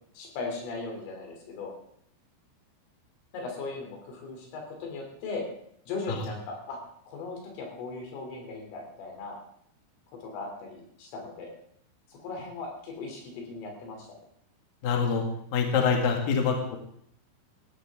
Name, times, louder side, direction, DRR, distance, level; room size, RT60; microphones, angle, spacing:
voice 1, 0.2-1.7 3.3-5.5 5.9-6.8 7.1-9.4 10.1-11.6 12.1-14.1, left 3 dB, 75° left, 1 dB, 5.8 m, -38 dB
voice 2, 14.8-15.2 15.5-16.8, left 6 dB, 55° left, 1 dB, 3.2 m, -25 dB
18.5 x 16.0 x 3.7 m, 0.69 s
omnidirectional pair, 5.9 m